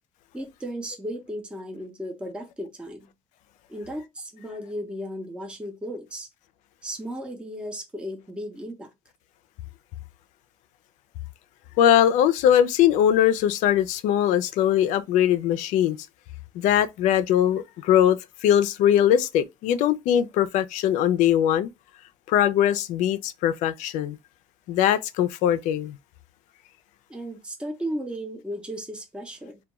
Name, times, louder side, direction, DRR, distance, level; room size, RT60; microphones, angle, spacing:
voice 1, 0.3-3.1 3.7-6.3 6.8-8.9 27.1-29.6, equal, 10° right, 0.6 m, -35 dB
voice 2, 11.8-16.0 16.5-21.7 22.3-24.2 24.7-26.0, left 10 dB, 75° left, 0.4 m, -21 dB
2.2 x 2.2 x 2.9 m
cardioid pair, 105°, 13 cm